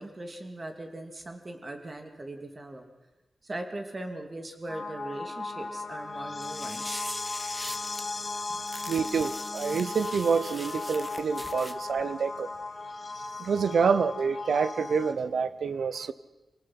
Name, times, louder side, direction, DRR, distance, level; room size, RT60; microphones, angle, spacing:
voice 1, 0.0-2.8 3.4-7.0 8.5-8.6 11.4-11.5 12.0-12.1, right 1 dB, 30° right, 5 dB, 2.7 m, -40 dB
sound 1, 4.7-15.1, left 3 dB, 40° left, 2.4 m, -36 dB
sound 2, 6.4-8.0 8.7-11.7, left 1 dB, 5° left, 1.6 m, -42 dB
voice 2, 8.9-12.5 13.4-16.1, right 5 dB, 85° right, 15 dB, 0.9 m, -27 dB
27.0 x 18.5 x 6.1 m, 1.0 s
wide cardioid pair, 105°, 0 cm